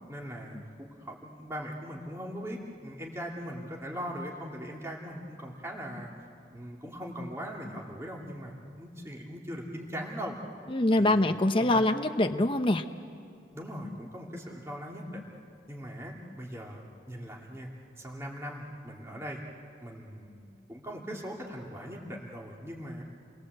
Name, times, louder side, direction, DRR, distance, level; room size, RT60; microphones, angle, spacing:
voice 1, 0.1-6.1 6.5-10.4 11.0-11.2 11.6-11.9 13.5-15.2 15.7-16.8 17.1-17.7 18.0-19.4 19.8-23.0, equal, 15° right, -2 dB, 2.6 m, -40 dB
voice 2, 10.7-12.8, left 1 dB, 30° left, 6 dB, 0.8 m, -24 dB
30.0 x 21.5 x 8.0 m, 2.4 s
head